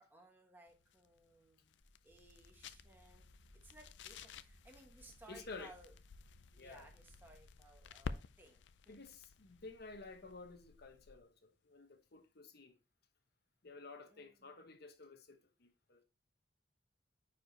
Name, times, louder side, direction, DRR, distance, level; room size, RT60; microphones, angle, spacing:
voice 1, 0.0-1.8 2.0-3.3 3.5-5.9 6.5-9.0 14.1-14.5, right 1 dB, 10° right, 1.3 m, -61 dB
sound 1, 0.7-11.3, left 5 dB, 80° left, 0.4 m, -53 dB
sound 2, 1.8-7.9, equal, 45° right, 4.5 m, -65 dB
voice 2, 5.3-5.7 6.6-6.9 8.9-12.8 13.6-16.0, left 3 dB, 60° left, 1.0 m, -53 dB
9.5 x 4.8 x 2.7 m
head